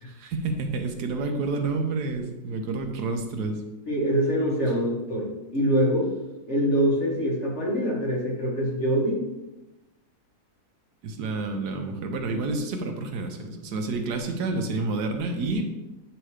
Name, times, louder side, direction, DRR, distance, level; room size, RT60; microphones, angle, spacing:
voice 1, 0.1-3.6 11.0-15.7, right 3 dB, 85° right, 4 dB, 1.4 m, -29 dB
voice 2, 3.9-6.1 6.5-9.2, equal, 45° left, -4 dB, 2.0 m, -24 dB
9.0 x 3.0 x 4.9 m, 1.0 s
omnidirectional pair, 1.7 m